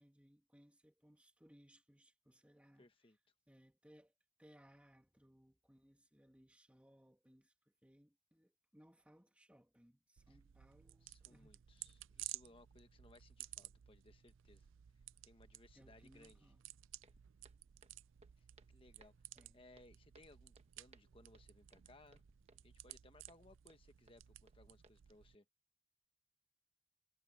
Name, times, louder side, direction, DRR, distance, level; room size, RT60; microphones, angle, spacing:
voice 1, 0.0-2.9 3.5-11.6 15.7-16.6 19.4-19.6, equal, 5° right, 2.4 m, -67 dB
voice 2, 2.8-3.2 10.3-10.4 11.0-14.7 15.2-16.5 18.4-19.1 19.5-22.2 22.6-25.4, left 2 dB, 25° left, 1.2 m, -65 dB
sound 1, 10.2-25.3, right 14 dB, 70° right, 0.4 m, -56 dB
Walk footsteps, 17.0-24.9, right 3 dB, 30° right, 1.3 m, -69 dB
head